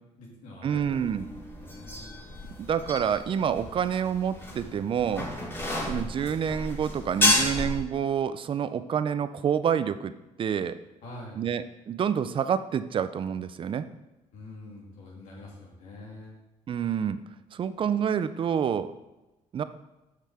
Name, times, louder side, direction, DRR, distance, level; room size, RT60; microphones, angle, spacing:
voice 1, 0.0-2.4 11.0-11.5 14.3-16.4, left 2 dB, 85° left, -4 dB, 2.7 m, -46 dB
voice 2, 0.6-1.3 2.6-5.3 5.9-10.1 10.4-10.8 11.4-13.8 16.7-17.2 17.5-18.9 19.5-19.6, right 8 dB, 40° right, 13 dB, 0.5 m, -28 dB
sound 1, 0.8-7.8, left 1 dB, 15° left, 2.9 m, -31 dB
6.6 x 6.6 x 4.9 m, 1.0 s
cardioid pair, 115°, 13 cm